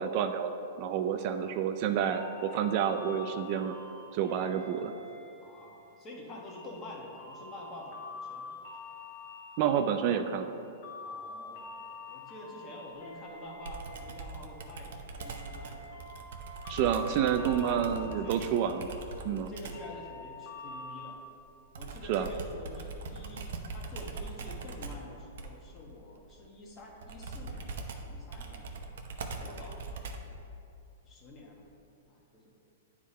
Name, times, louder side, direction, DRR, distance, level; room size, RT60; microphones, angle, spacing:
voice 1, 0.0-3.7 4.1-4.9 9.6-10.5 16.7-18.9 19.2-19.5 22.1-22.3, right 8 dB, 45° right, 7 dB, 0.3 m, -29 dB
voice 2, 1.2-1.6 5.4-8.5 8.8-8.9 11.0-16.0 16.9-18.7 19.5-21.2 21.8-30.2 31.1-31.7 32.1-32.4, left 2 dB, 25° left, -1 dB, 1.2 m, -48 dB
sound 1, 2.1-21.1, left 3 dB, 50° left, 1.2 m, -47 dB
Computer keyboard, 13.7-19.9 21.7-30.4, right 3 dB, 70° right, 0.7 m, -42 dB
9.5 x 3.6 x 4.1 m, 2.6 s
hypercardioid pair, 145°, 0 cm